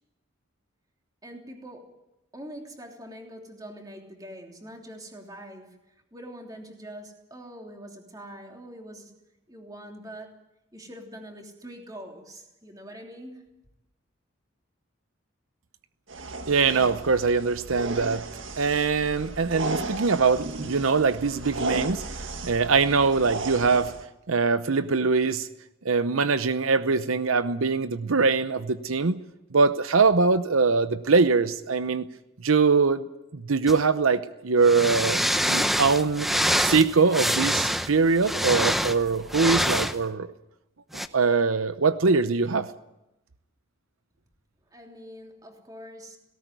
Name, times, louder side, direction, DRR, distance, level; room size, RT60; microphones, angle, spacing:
voice 1, 1.2-2.0 2.3-5.8 6.1-9.1 9.5-10.3 10.7-13.4 44.7-46.2, equal, 20° right, 2 dB, 3.2 m, -43 dB
sound 1, 16.1-24.0, right 2 dB, 65° right, 1.8 m, -35 dB
voice 2, 16.5-18.2 18.6-22.0 22.4-23.9 24.3-25.5 25.8-29.2 29.5-32.1 32.4-33.0 33.3-35.2 35.5-36.3 36.6-40.3 41.1-42.7, right 4 dB, 85° right, 12 dB, 0.8 m, -22 dB
sound 2, 33.7-33.8 34.6-40.0 40.9-41.1, equal, ahead, 0.7 m, -25 dB
18.0 x 18.0 x 9.3 m, 0.91 s
head